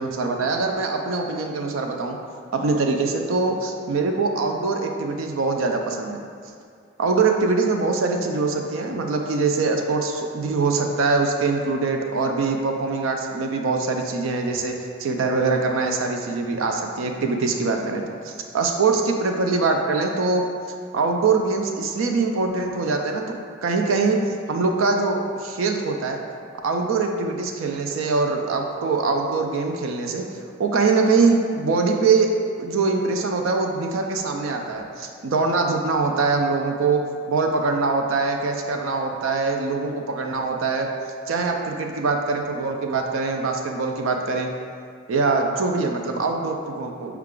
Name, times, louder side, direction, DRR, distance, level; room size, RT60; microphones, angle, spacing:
voice 1, 0.0-2.2 2.5-6.2 7.0-20.5 20.9-23.2 23.6-26.2 26.6-30.3 30.6-32.3 32.6-40.9 41.3-44.5 45.1-47.2, right 4 dB, 80° right, 3 dB, 0.4 m, -23 dB
5.5 x 2.3 x 3.7 m, 2.2 s
head